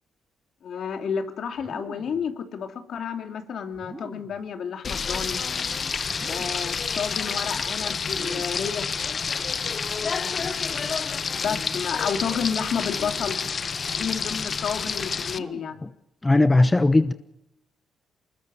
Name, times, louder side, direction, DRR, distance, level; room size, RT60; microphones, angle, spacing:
voice 1, 0.6-5.4 6.3-9.1 10.1-10.7 11.3-13.4 13.9-15.8, left 7 dB, 60° left, 2.9 m, -31 dB
sound 1, 1.6-2.3 3.7-4.5 6.0-6.8 8.0-8.8 10.3-10.7 12.1-12.6 13.7-14.1 15.2-15.9, right 2 dB, 15° right, 3.2 m, -44 dB
Frying (food), 4.8-15.4, left 5 dB, 40° left, 1.0 m, -29 dB
voice 2, 16.2-17.1, left 2 dB, 15° left, 1.0 m, -18 dB
24.0 x 21.0 x 6.5 m
cardioid pair, 90°, 0 cm